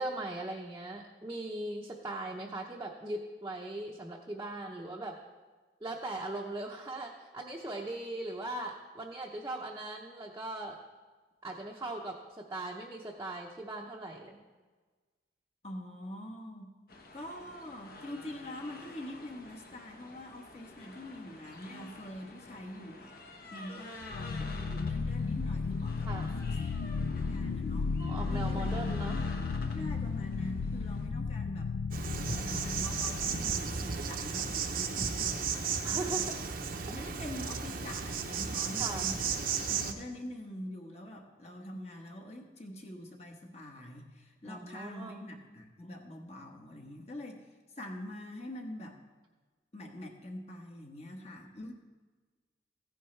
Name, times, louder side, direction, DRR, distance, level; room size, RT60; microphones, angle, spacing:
voice 1, 0.0-5.2 5.8-10.8 11.4-14.4 26.1-26.4 28.0-29.2 35.8-36.4 38.8-39.1 44.4-45.2, right 2 dB, 15° right, -2 dB, 0.8 m, -39 dB
voice 2, 15.6-16.7 17.1-23.1 23.5-26.6 27.0-27.9 28.3-28.8 29.7-31.7 32.4-39.2 39.6-47.4 47.8-49.0 49.7-51.7, left 1 dB, 35° left, 2 dB, 1.2 m, -44 dB
sound 1, 16.9-31.1, left 2 dB, 55° left, 1.2 m, -50 dB
sound 2, 24.0-33.8, left 4 dB, 70° left, 0.4 m, -34 dB
Insect, 31.9-39.9, right 6 dB, 50° right, 0.8 m, -34 dB
15.0 x 10.0 x 3.3 m, 1.3 s
head